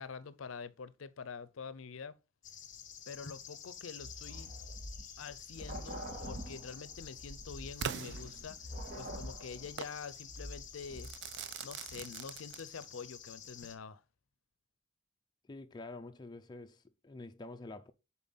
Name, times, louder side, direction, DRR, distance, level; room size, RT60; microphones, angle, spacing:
voice 1, 0.0-2.2 3.1-4.5 5.2-8.6 8.9-11.1 11.6-14.0, left 5 dB, 80° left, 0.5 m, -46 dB
sound 1, 2.4-13.8, left 8 dB, 40° left, 0.9 m, -50 dB
sound 2, 4.0-11.5 11.8-12.1, equal, 40° right, 1.6 m, -46 dB
Crackle / Fireworks, 7.8-9.0 9.8-10.0 11.0-13.0, right 7 dB, 60° right, 0.4 m, -42 dB
voice 2, 15.5-17.9, left 2 dB, 20° left, 0.4 m, -47 dB
7.2 x 4.3 x 3.9 m
head